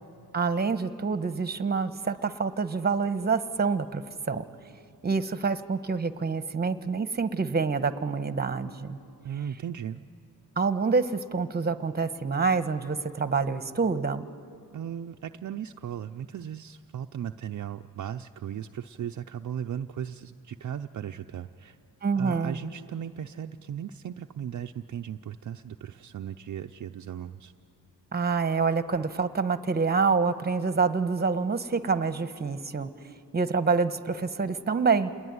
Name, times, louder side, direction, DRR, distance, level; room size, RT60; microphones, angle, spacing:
voice 1, 0.3-4.4 5.0-9.0 10.6-14.3 22.0-22.6 28.1-32.9 33.3-35.1, right 4 dB, 25° right, 11 dB, 1.1 m, -27 dB
voice 2, 9.2-10.0 14.7-21.8 22.2-27.5, right 9 dB, 55° right, 6 dB, 0.6 m, -37 dB
28.5 x 21.0 x 9.6 m, 2.6 s
cardioid pair, 105°, 36 cm